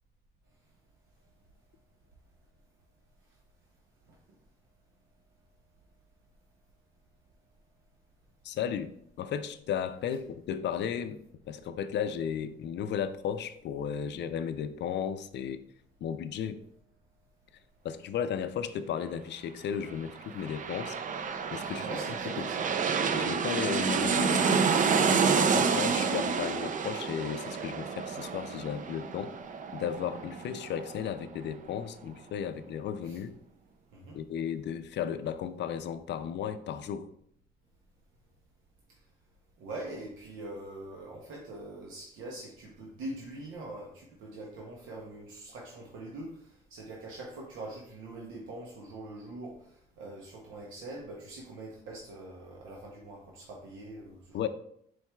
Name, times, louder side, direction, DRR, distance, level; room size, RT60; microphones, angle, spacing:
voice 1, 8.4-8.9 9.2-15.6 16.0-16.6 17.8-21.0 21.5-21.9 22.4-22.5 23.1-24.5 25.4-29.3 29.7-33.4 34.1-37.1 54.3-54.5, left 8 dB, 60° left, 11 dB, 0.4 m, -34 dB
sound 1, 20.1-31.4 31.8-31.9, right 5 dB, 40° right, 0.4 m, -29 dB
voice 2, 21.7-22.7 25.8-26.2 33.0-33.2 33.9-34.2 39.6-46.4 46.7-49.6 50.0-54.5, right 2 dB, 80° right, -1 dB, 0.8 m, -43 dB
4.6 x 4.3 x 2.3 m, 0.69 s
cardioid pair, 90°, 20 cm